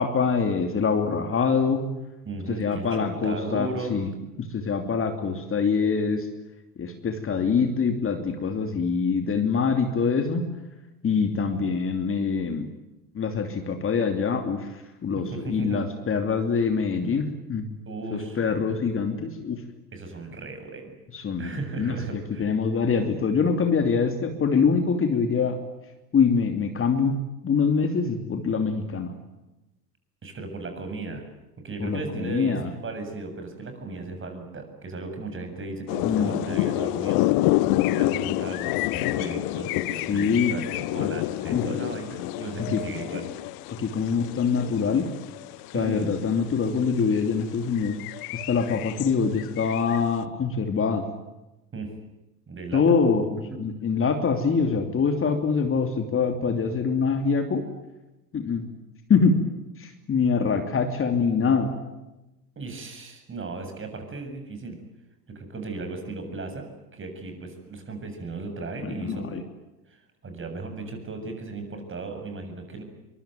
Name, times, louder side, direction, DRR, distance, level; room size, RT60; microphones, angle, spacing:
voice 1, 0.0-1.8 2.5-4.1 4.5-6.3 6.8-10.4 11.0-12.7 13.1-17.7 18.1-19.6 21.1-25.6 26.1-27.2 27.4-29.1 31.8-32.7 36.0-36.4 40.0-40.5 41.0-41.1 41.5-41.6 42.7-42.8 43.8-45.1 45.7-48.0 48.3-51.1 52.7-57.6 58.3-58.6 59.1-59.3 59.8-61.7 68.8-69.4, left 5 dB, 25° left, 6 dB, 3.0 m, -24 dB
voice 2, 2.3-4.0 15.2-15.8 17.9-18.4 19.9-20.9 21.4-22.4 30.2-31.2 31.6-37.2 37.8-43.3 45.7-46.1 51.7-51.9 52.5-53.0 53.5-53.6 62.6-64.8 65.3-66.7 66.9-69.3 69.9-72.8, right 3 dB, 25° right, 6 dB, 7.6 m, -36 dB
sound 1, 35.9-46.3 46.8-47.0 47.4-50.0, left 17 dB, 45° left, 1.2 m, -28 dB
24.0 x 24.0 x 9.2 m, 1.0 s
hypercardioid pair, 85°, 49 cm